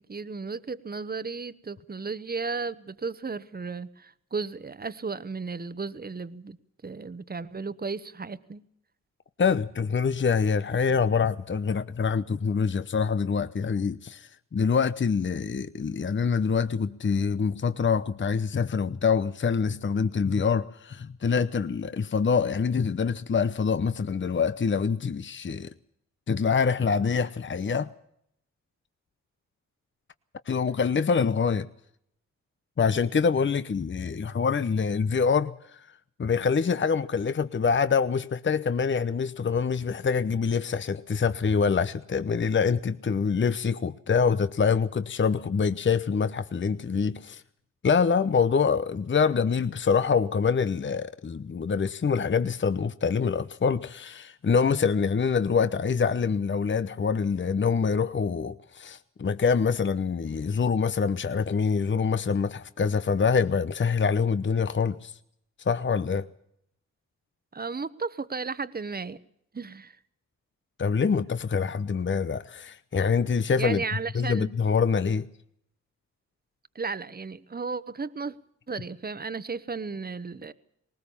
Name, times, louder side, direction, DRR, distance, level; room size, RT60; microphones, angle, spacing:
voice 1, 0.1-6.6 6.8-8.6 67.5-69.2 69.5-70.0 73.6-74.5 76.7-78.4 78.7-80.5, right 4 dB, 30° right, 1.2 m, -34 dB
voice 2, 9.4-25.7 26.3-27.9 30.5-31.7 32.8-35.8 36.2-47.4 47.8-65.1 65.6-66.3 70.8-73.8 74.1-75.3, left 5 dB, 35° left, 0.9 m, -25 dB
19.5 x 19.0 x 7.2 m
supercardioid pair, 40°, 31 cm